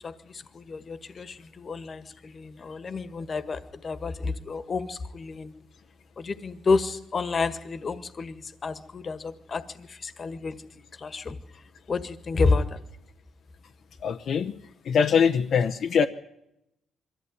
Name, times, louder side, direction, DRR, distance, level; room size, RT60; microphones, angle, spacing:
voice 1, 0.0-5.5 6.2-10.6 11.0-11.3 11.9-12.8, left 4 dB, 35° left, 12 dB, 1.6 m, -30 dB
voice 2, 14.0-14.5 14.9-16.1, left 6 dB, 60° left, 5 dB, 0.9 m, -22 dB
23.0 x 14.5 x 9.5 m, 0.82 s
cardioid pair, 110°, 0 cm